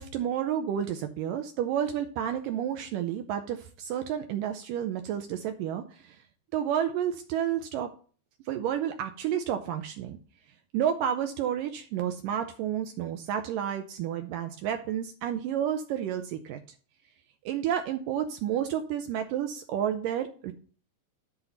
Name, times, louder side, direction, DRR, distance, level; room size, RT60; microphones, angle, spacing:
voice 1, 0.0-6.2 6.5-7.9 8.5-10.2 10.7-16.6 17.5-20.5, right 9 dB, 80° right, 6 dB, 2.0 m, -30 dB
11.0 x 4.0 x 5.7 m, 0.41 s
omnidirectional pair, 4.6 m